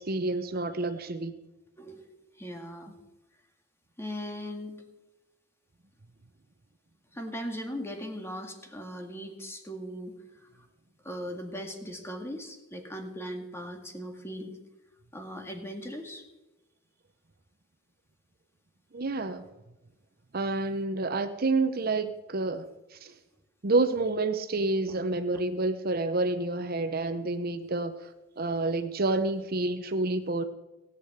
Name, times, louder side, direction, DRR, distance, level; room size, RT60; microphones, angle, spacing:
voice 1, 0.0-1.3 18.9-19.5 20.3-23.1 23.6-30.4, right 2 dB, 45° right, 9 dB, 0.8 m, -29 dB
voice 2, 1.8-2.9 4.0-4.8 7.1-10.5 11.0-14.6 15.1-16.3, equal, 10° left, 4 dB, 2.0 m, -39 dB
17.5 x 8.4 x 8.0 m, 1.1 s
head